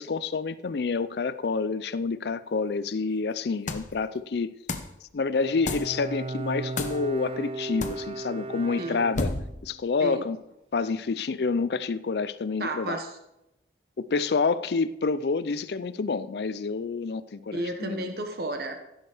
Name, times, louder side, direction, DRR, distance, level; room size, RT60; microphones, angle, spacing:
voice 1, 0.0-4.5 5.1-9.3 9.6-10.4 10.7-13.0 14.0-18.1, left 4 dB, 60° left, 0.4 m, -28 dB
sound 1, 3.7-4.0 4.7-5.0 5.7-6.0 6.8-7.1 7.8-8.1 9.2-9.6, left 2 dB, 45° left, 0.9 m, -31 dB
Bowed string instrument, 5.3-9.7, right 3 dB, 30° right, 0.4 m, -36 dB
voice 2, 12.6-13.2 17.5-18.9, right 1 dB, 55° right, 1.1 m, -32 dB
15.0 x 6.3 x 4.9 m
head